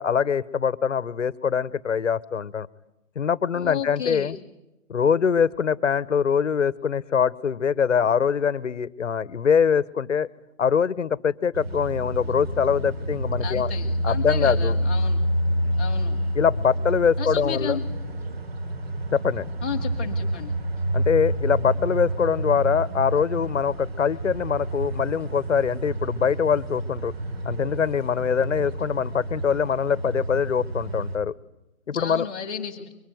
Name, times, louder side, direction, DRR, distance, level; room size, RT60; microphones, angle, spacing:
voice 1, 0.0-2.7 3.2-4.4 4.9-10.3 10.6-13.7 14.0-14.7 16.3-17.8 19.1-19.5 20.9-27.1 27.4-31.3 31.9-32.3, left 7 dB, 60° left, 18 dB, 1.1 m, -23 dB
voice 2, 3.6-4.4 13.4-15.2 15.8-16.2 17.2-17.8 19.6-20.5 31.9-32.9, left 7 dB, 5° left, -5 dB, 0.9 m, -33 dB
sound 1, 11.5-31.2, right 1 dB, 45° right, 3.2 m, -28 dB
24.5 x 23.5 x 9.3 m, 0.93 s
hypercardioid pair, 175°, 43 cm